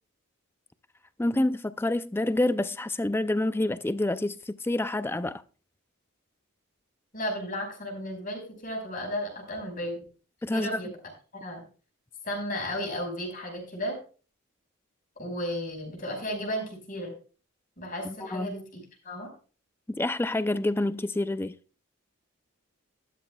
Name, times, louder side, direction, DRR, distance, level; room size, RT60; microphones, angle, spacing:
voice 1, 1.2-5.4 10.4-10.9 18.0-18.6 19.9-21.6, left 1 dB, 10° left, 0.4 m, -28 dB
voice 2, 7.1-10.0 10.5-10.9 11.3-11.6 12.2-14.0 15.2-17.1 17.8-19.3, equal, 40° left, 5.0 m, -34 dB
13.0 x 12.5 x 2.3 m
head